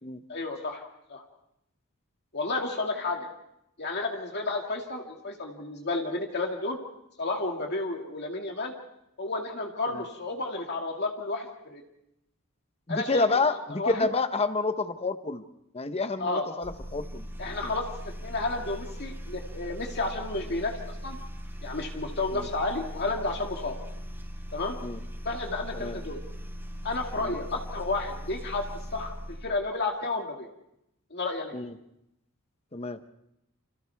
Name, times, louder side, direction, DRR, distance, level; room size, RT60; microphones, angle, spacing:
voice 1, 0.3-0.8 1.1-1.2 2.3-3.3 3.8-6.8 7.2-8.7 9.2-11.8 12.9-14.1 16.2-16.5 17.4-17.9 18.2-21.2 21.6-23.8 24.5-24.8 25.2-26.2 26.8-29.1 29.4-30.5 31.1-31.5, left 3 dB, 50° left, 1 dB, 2.2 m, -31 dB
voice 2, 12.9-15.4 15.7-17.2 17.6-17.7 22.3-22.5 24.8-25.0 25.7-26.0 27.2-27.3 31.5-31.7 32.7-33.0, left 3 dB, 30° left, 9 dB, 1.0 m, -29 dB
sound 1, 16.6-29.6, equal, 10° right, 4.0 m, -39 dB
29.0 x 26.5 x 3.5 m, 0.82 s
head